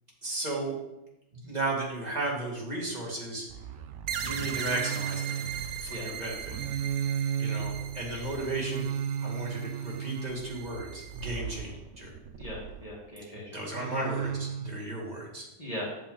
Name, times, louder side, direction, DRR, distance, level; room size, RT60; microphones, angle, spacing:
voice 1, 0.2-0.8 1.3-3.5 4.2-5.4 5.8-6.5 7.4-8.8 9.2-12.1 13.5-15.5, right 2 dB, 35° right, -3 dB, 2.1 m, -34 dB
sound 1, 3.5-13.0 13.7-14.8, right 8 dB, 85° right, 0.9 m, -35 dB
sound 2, 4.1-11.3, right 8 dB, 55° right, 0.7 m, -39 dB
voice 2, 12.4-14.0 15.6-16.0, equal, 30° left, -5 dB, 1.8 m, -39 dB
8.3 x 6.7 x 3.8 m, 0.90 s
omnidirectional pair, 1.2 m